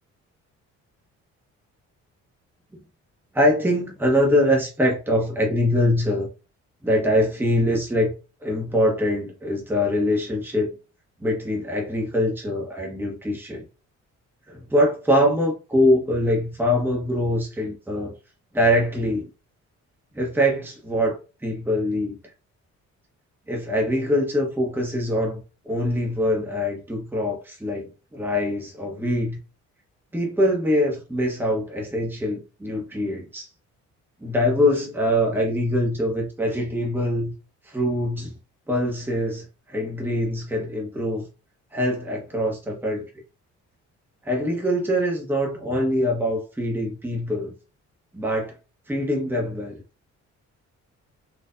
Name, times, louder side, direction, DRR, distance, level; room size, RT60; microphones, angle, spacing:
voice 1, 3.3-6.3 6.8-8.1 8.4-10.8 11.2-13.6 14.5-18.1 18.5-19.3 20.1-21.2 21.4-22.2 23.5-25.4 25.6-29.4 30.1-33.5 34.2-37.3 37.7-38.3 38.7-41.3 41.7-43.1 44.2-47.5 48.1-48.5 48.9-49.8, left 1 dB, 5° right, 1.1 m, -23 dB
4.3 x 2.5 x 2.5 m
cardioid pair, 90°, 30 cm